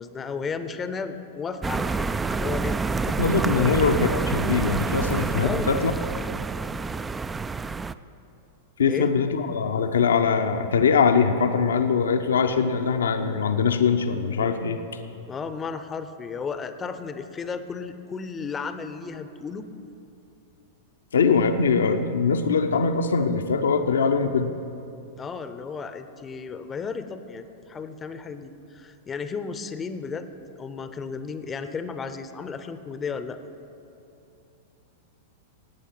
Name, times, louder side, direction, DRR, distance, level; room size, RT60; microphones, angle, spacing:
voice 1, 0.0-3.7 5.4-5.7 8.8-9.1 15.3-19.7 25.2-30.3 30.6-33.4, left 5 dB, 20° left, 11 dB, 0.7 m, -34 dB
sound 1, 1.6-7.9, right 4 dB, 15° right, 0.3 m, -27 dB
voice 2, 3.2-5.9 8.8-14.8 21.1-24.5, left 5 dB, 70° left, 8 dB, 0.7 m, -22 dB
18.5 x 8.4 x 5.9 m, 2.8 s
figure-of-eight pair, 95°, 0 cm